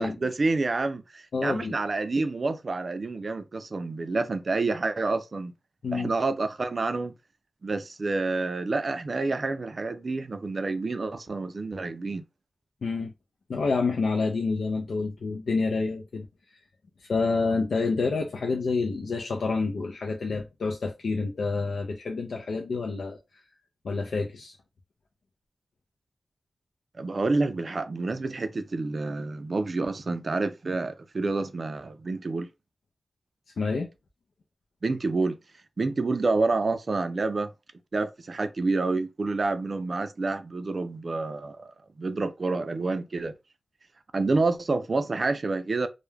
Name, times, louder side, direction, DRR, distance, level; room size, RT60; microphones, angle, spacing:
voice 1, 0.0-5.5 5.9-7.1 7.6-12.2 26.9-32.5 34.8-35.4 35.8-37.5 37.9-43.3 44.1-45.9, right 3 dB, 50° right, 0.3 m, -28 dB
voice 2, 1.3-1.8 5.8-6.1 12.8-13.1 13.5-16.3 17.1-23.2 23.8-24.6 33.6-33.9, left 4 dB, 85° left, 0.4 m, -28 dB
2.2 x 2.1 x 3.1 m
wide cardioid pair, 95°, 0 cm